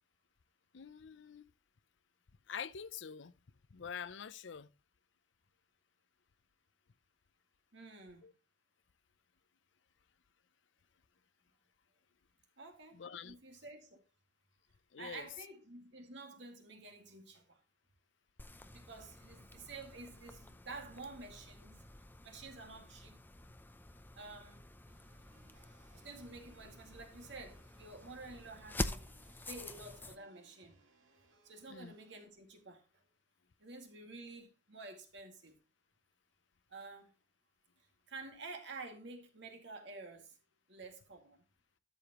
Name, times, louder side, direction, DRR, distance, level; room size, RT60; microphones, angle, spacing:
voice 1, 0.7-1.5 2.5-3.3 3.7-4.7 8.2-8.3 12.9-13.4 14.9-15.3 31.7-32.0, left 7 dB, 70° left, 0.6 m, -46 dB
voice 2, 7.7-8.3 12.6-14.0 15.0-17.6 18.7-21.8 22.2-23.2 24.2-24.7 25.9-29.1 29.5-30.8 31.4-33.0 33.6-35.5 36.7-37.1 38.1-40.4 40.7-41.4, right 3 dB, 65° right, 2.1 m, -50 dB
sound 1, 18.4-30.2, left 1 dB, 10° left, 0.6 m, -47 dB
sound 2, 24.9-32.2, right 3 dB, 90° right, 2.0 m, -70 dB
12.5 x 6.9 x 3.0 m
head